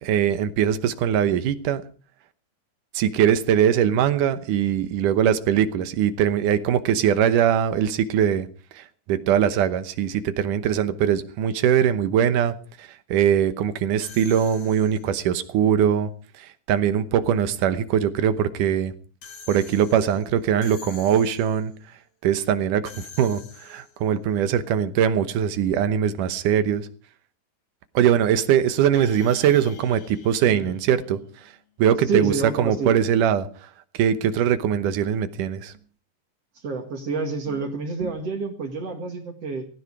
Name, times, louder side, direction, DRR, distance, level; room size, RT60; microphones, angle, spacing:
voice 1, 0.0-1.8 2.9-8.5 8.7-16.1 16.4-18.9 19.5-21.7 22.2-26.9 27.9-31.2 31.8-33.5 33.9-35.7 38.0-38.1, right 9 dB, 85° right, 2.6 m, -21 dB
sound 1, 14.0-15.3 19.2-21.7 22.8-24.1 28.9-31.5, left 6 dB, 55° left, 2.9 m, -46 dB
voice 2, 32.1-33.0 36.6-39.7, right 4 dB, 55° right, 2.9 m, -28 dB
17.5 x 16.0 x 4.8 m
omnidirectional pair, 3.6 m